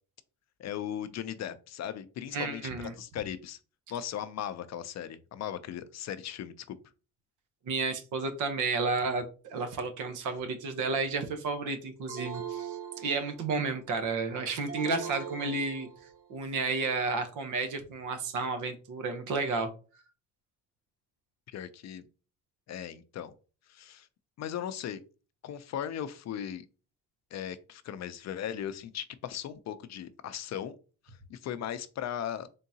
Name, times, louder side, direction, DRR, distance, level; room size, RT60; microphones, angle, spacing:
voice 1, 0.6-3.6 3.9-6.8 21.5-22.1 22.7-23.3 23.7-24.1 24.4-25.0 25.4-26.7 27.3-30.8 31.1-32.5, left 10 dB, 60° left, 13 dB, 0.5 m, -38 dB
voice 2, 2.3-2.9 7.6-15.9 16.3-19.7, right 3 dB, 85° right, 7 dB, 0.9 m, -32 dB
sound 1, 12.1-13.6 14.7-16.3, right 7 dB, 50° right, 1.3 m, -40 dB
3.8 x 3.6 x 2.8 m, 0.35 s
cardioid pair, 90°, 30 cm